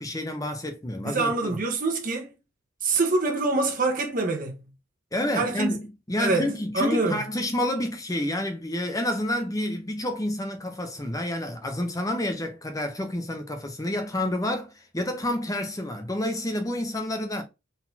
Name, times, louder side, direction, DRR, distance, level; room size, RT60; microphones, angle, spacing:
voice 1, 0.0-1.6 5.1-17.4, left 1 dB, 15° left, 0.8 m, -29 dB
voice 2, 1.0-2.3 2.8-4.7 5.3-5.7 6.2-6.5 6.7-7.2, right 3 dB, 40° right, 1.2 m, -25 dB
4.1 x 4.0 x 2.8 m
head